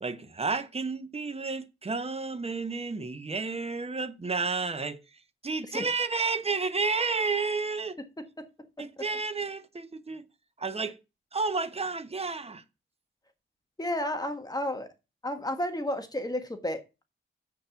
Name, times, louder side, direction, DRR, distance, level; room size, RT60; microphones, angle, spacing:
voice 1, 0.0-5.0 5.4-8.0 8.8-10.2 10.6-11.0 11.3-12.6, right 4 dB, 30° right, 1.0 m, -31 dB
voice 2, 8.2-8.5 13.8-14.9 15.2-17.0, left 1 dB, 20° left, 1.4 m, -32 dB
7.5 x 6.9 x 5.8 m
wide cardioid pair, 130°, 21 cm